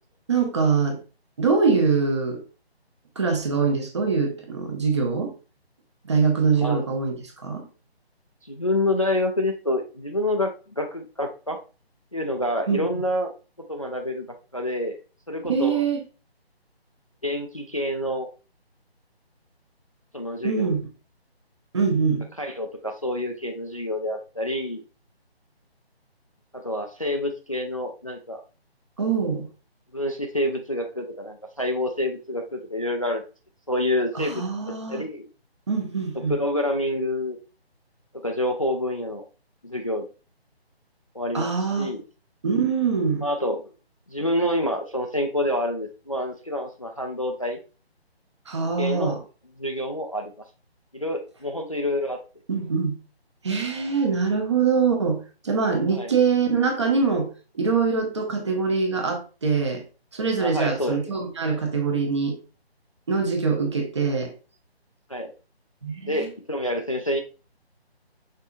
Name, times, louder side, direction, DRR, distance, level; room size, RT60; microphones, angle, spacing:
voice 1, 0.3-1.0 1.4-2.4 3.2-5.3 6.1-7.2 7.4-7.7 12.7-12.9 15.5-16.0 20.4-20.8 21.7-22.3 29.0-29.5 34.1-35.0 35.7-36.3 41.3-41.9 42.4-43.2 48.5-49.2 52.5-52.9 53.4-59.8 60.1-62.4 63.1-64.3 65.8-66.3, right 5 dB, 25° right, 0.8 m, -23 dB
voice 2, 6.6-7.0 8.5-11.6 12.1-13.3 13.7-14.3 14.5-15.0 15.3-15.8 17.2-18.3 20.1-20.7 22.4-24.8 26.5-28.4 29.9-33.2 33.7-35.3 36.3-37.4 38.1-39.2 39.6-40.0 41.1-42.0 43.2-43.6 44.1-47.6 48.8-49.2 49.6-50.3 50.9-52.2 55.9-56.1 60.4-61.1 65.1-65.3 66.1-67.2, left 1 dB, 35° left, 0.4 m, -27 dB
5.4 x 4.1 x 2.4 m
figure-of-eight pair, 155°, 32 cm